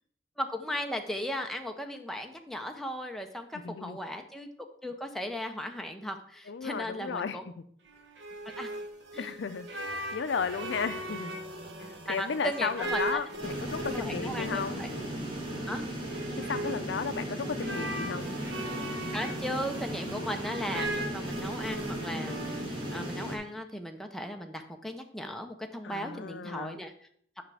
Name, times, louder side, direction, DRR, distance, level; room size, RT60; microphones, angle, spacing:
voice 1, 0.4-7.4 8.6-8.7 9.1-9.3 12.1-13.2 13.9-14.9 15.7-15.8 19.1-26.9, equal, ahead, 4 dB, 0.6 m, -37 dB
voice 2, 3.6-4.0 6.5-7.5 9.2-11.3 11.8-14.8 16.5-18.4 20.1-20.4 25.8-26.8, left 6 dB, 70° left, 11 dB, 0.5 m, -34 dB
sound 1, 7.8-23.2, right 1 dB, 65° right, 1.1 m, -39 dB
sound 2, 13.4-23.4, equal, 25° right, 1.6 m, -36 dB
8.5 x 5.8 x 3.4 m, 0.63 s
head